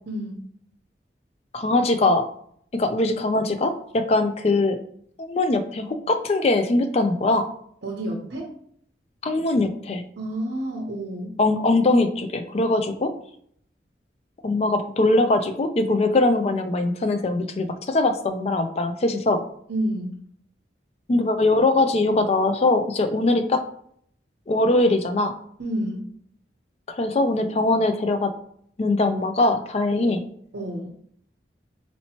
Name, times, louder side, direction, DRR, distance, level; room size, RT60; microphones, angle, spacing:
voice 1, 0.1-0.4 7.8-8.5 10.2-11.4 19.7-20.2 25.6-26.1 30.0-30.2 30.5-30.9, right 1 dB, 70° right, -2 dB, 0.8 m, -29 dB
voice 2, 1.5-2.3 2.7-4.8 5.2-7.5 9.2-10.0 11.4-13.1 14.4-19.4 21.1-23.6 24.5-25.3 27.0-28.3 28.8-30.2, left 2 dB, 35° left, 8 dB, 0.4 m, -21 dB
4.3 x 2.9 x 2.8 m, 0.65 s
head